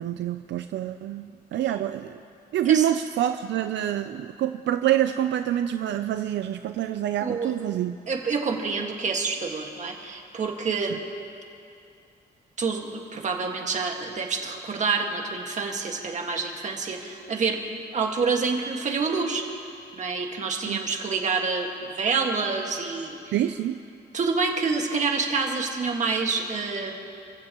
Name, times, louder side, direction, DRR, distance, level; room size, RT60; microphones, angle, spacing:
voice 1, 0.0-2.2 2.5-8.0 20.7-20.8 23.3-23.8, right 11 dB, 75° right, 9 dB, 0.5 m, -26 dB
voice 2, 7.2-7.5 8.1-11.0 12.6-17.6 17.9-19.4 19.9-23.4 24.1-26.9, right 4 dB, 40° right, 2 dB, 1.8 m, -27 dB
28.5 x 15.5 x 3.0 m, 2.5 s
cardioid pair, 145°, 19 cm